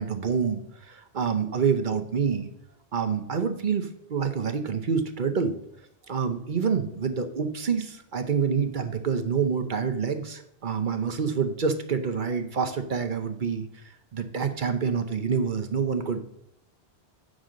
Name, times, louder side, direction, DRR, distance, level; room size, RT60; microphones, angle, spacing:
voice 1, 0.0-2.5 2.9-5.6 6.1-13.8 14.1-16.3, right 6 dB, 50° right, 6 dB, 0.9 m, -27 dB
8.9 x 6.3 x 3.8 m, 0.75 s
omnidirectional pair, 1.2 m